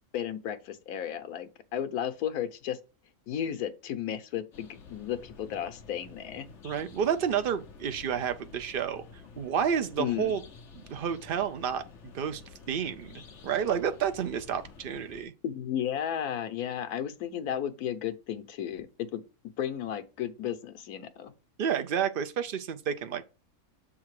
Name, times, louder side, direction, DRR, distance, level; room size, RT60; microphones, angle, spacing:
voice 1, 0.1-2.8 3.3-6.5 10.0-10.4 15.4-19.2 19.6-21.3, left 10 dB, 85° left, 1.3 m, -34 dB
sound 1, 4.5-15.2, left 5 dB, 55° left, 1.2 m, -50 dB
voice 2, 6.6-9.1 9.4-10.4 10.7-12.4 12.7-15.3 21.6-23.2, right 8 dB, 55° right, 0.6 m, -30 dB
7.3 x 3.7 x 4.7 m
omnidirectional pair, 1.6 m